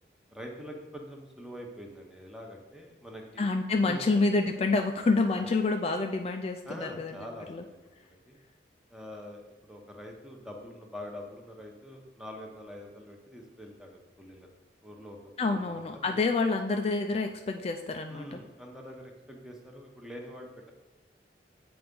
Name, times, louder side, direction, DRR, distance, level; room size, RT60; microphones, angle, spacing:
voice 1, 0.3-3.4 3.8-4.0 5.4-5.5 6.6-7.8 8.0-8.4 8.9-14.5 14.8-16.2 18.1-20.7, equal, 5° right, 1 dB, 0.8 m, -45 dB
voice 2, 3.4-7.6 15.4-18.4, left 3 dB, 35° left, 5 dB, 0.3 m, -28 dB
7.7 x 3.4 x 5.2 m, 1.1 s
head